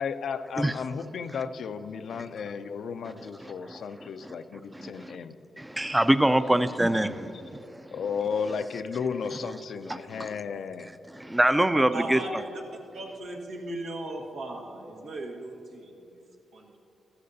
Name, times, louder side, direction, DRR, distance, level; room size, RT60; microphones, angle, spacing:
voice 1, 0.0-5.4 6.9-7.2 7.9-10.9, left 6 dB, 75° left, 0.4 m, -34 dB
voice 2, 3.4-4.4 4.7-5.2 5.6-7.6 9.9-10.3 11.1-12.4, right 1 dB, 10° right, 0.4 m, -25 dB
voice 3, 11.9-12.5 12.9-15.9 16.5-16.8, right 2 dB, 90° right, 1.4 m, -37 dB
14.0 x 13.0 x 2.7 m
cardioid pair, 65°, 0 cm